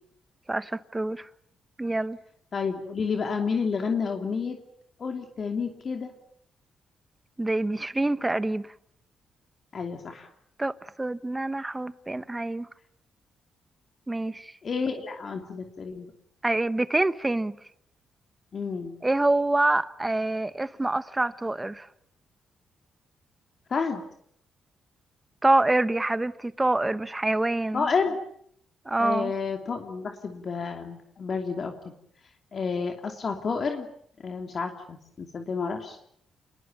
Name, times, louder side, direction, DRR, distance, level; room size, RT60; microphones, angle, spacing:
voice 1, 0.5-1.3 1.8-2.2 7.4-8.7 10.6-12.7 14.1-14.6 16.4-17.6 19.0-21.9 25.4-27.9 28.8-29.3, right 2 dB, 15° right, 1.1 m, -26 dB
voice 2, 2.5-4.6 5.0-6.1 9.7-10.3 14.6-16.1 18.5-19.0 23.7-24.0 27.7-28.2 29.0-31.7 32.5-33.9 34.2-36.0, left 5 dB, 45° left, 2.7 m, -30 dB
28.0 x 21.0 x 8.9 m
cardioid pair, 115°, 0 cm